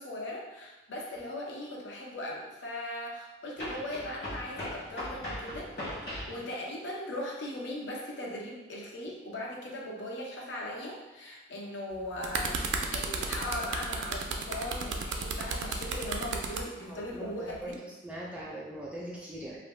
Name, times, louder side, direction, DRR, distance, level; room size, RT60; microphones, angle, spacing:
voice 1, 0.0-5.7 6.3-17.8, left 1 dB, 85° left, -2 dB, 0.6 m, -39 dB
sound 1, 1.1-1.2 3.6-6.4, left 1 dB, 60° left, 1.0 m, -39 dB
sound 2, 11.9-16.6 17.5-17.7, right 5 dB, 85° right, 0.3 m, -33 dB
voice 2, 16.7-19.6, right 1 dB, 5° right, -5 dB, 0.4 m, -41 dB
2.5 x 2.1 x 3.1 m, 1.1 s
head